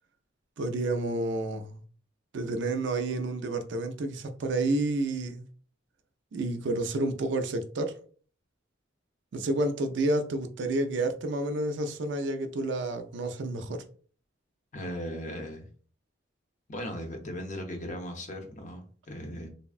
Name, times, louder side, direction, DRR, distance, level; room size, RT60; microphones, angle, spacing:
voice 1, 0.6-1.8 2.3-5.5 6.3-8.0 9.3-13.8, right 2 dB, 65° right, 0.4 m, -30 dB
voice 2, 14.7-15.7 16.7-19.5, equal, 40° left, 0.6 m, -37 dB
3.4 x 2.0 x 2.3 m
head